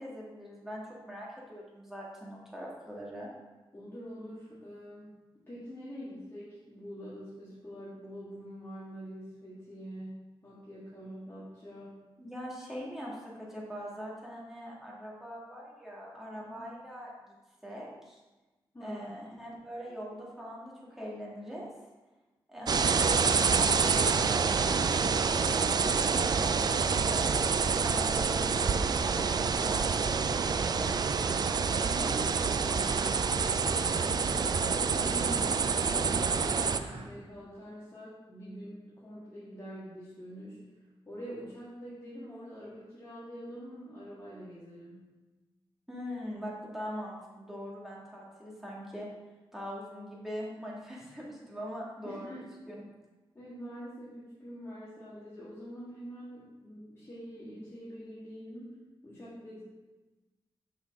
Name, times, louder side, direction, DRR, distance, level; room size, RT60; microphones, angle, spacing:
voice 1, 0.0-3.3 12.2-17.3 17.6-18.2 18.8-21.7 22.5-29.1 29.6-31.0 45.9-49.1 49.5-52.8, equal, 5° right, -5 dB, 1.8 m, -42 dB
voice 2, 3.7-5.1 5.5-10.1 10.4-12.0 16.3-16.6 18.7-19.1 31.7-33.0 33.7-40.6 41.0-45.1 52.0-52.4 53.3-58.8 59.0-59.6, equal, 25° left, -9 dB, 1.7 m, -45 dB
sound 1, 22.7-36.8, right 5 dB, 45° right, 0.3 m, -27 dB
sound 2, 30.4-37.1, right 3 dB, 90° right, 0.8 m, -47 dB
6.2 x 5.4 x 3.6 m, 1.2 s
wide cardioid pair, 95°, 10 cm